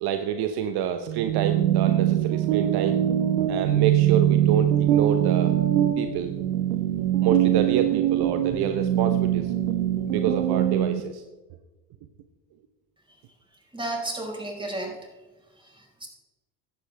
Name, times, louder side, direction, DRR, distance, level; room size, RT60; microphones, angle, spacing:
voice 1, 0.0-3.0 3.5-5.5 6.0-6.3 7.2-9.5 10.1-11.2, right 8 dB, 55° right, 8 dB, 1.0 m, -27 dB
sound 1, 1.1-11.0, right 12 dB, 75° right, 1.2 m, -23 dB
voice 2, 13.7-14.9 15.6-16.1, right 2 dB, 10° right, 0 dB, 5.0 m, -33 dB
15.5 x 11.0 x 3.5 m, 1.2 s
hypercardioid pair, 65°, 46 cm